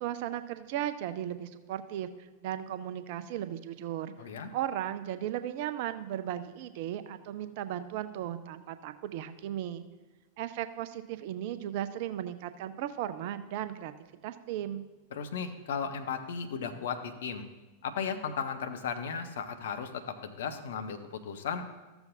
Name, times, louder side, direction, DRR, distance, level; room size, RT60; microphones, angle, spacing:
voice 1, 0.0-4.1 4.5-9.8 10.4-13.9 14.2-14.9, right 11 dB, 50° right, 11 dB, 0.5 m, -36 dB
voice 2, 4.2-4.5 15.1-17.5 17.8-21.7, left 6 dB, 60° left, 7 dB, 0.8 m, -35 dB
14.0 x 7.0 x 2.6 m, 1.2 s
figure-of-eight pair, 90°, 0 cm